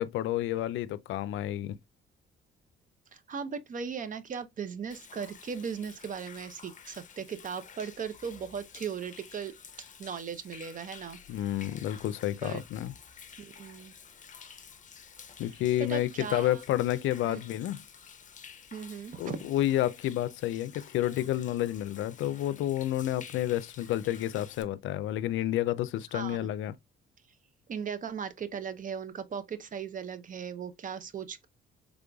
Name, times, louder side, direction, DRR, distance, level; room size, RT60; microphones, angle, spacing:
voice 1, 0.0-1.8 11.3-12.9 15.4-17.8 19.2-26.7, left 13 dB, 80° left, 0.4 m, -30 dB
voice 2, 3.1-9.5 10.0-11.2 12.4-12.6 13.4-14.0 15.8-16.6 17.2-17.4 18.7-19.5 26.1-26.4 27.7-31.5, right 7 dB, 40° right, 0.6 m, -37 dB
Human voice / Rain / Stream, 4.9-24.6, left 7 dB, 40° left, 0.7 m, -51 dB
3.7 x 3.4 x 2.2 m
cardioid pair, 90°, 20 cm